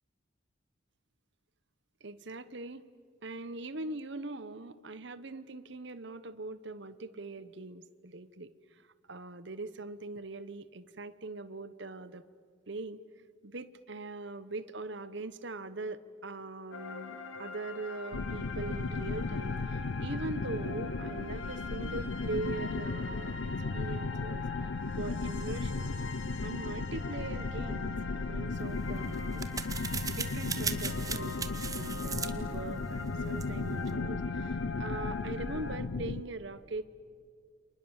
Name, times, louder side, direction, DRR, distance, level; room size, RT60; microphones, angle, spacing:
voice 1, 2.0-2.9 3.2-12.3 12.7-13.0 13.4-24.5 25.0-26.0 26.4-29.4 30.1-31.4 31.7-36.9, right 2 dB, 55° right, 14 dB, 1.0 m, -41 dB
sound 1, 16.7-35.8, left 4 dB, 65° left, 2.3 m, -43 dB
sound 2, 18.1-36.2, left 3 dB, 90° left, 0.7 m, -36 dB
sound 3, 28.6-33.9, right 5 dB, 15° right, 0.9 m, -39 dB
29.5 x 27.0 x 7.3 m, 2.2 s
head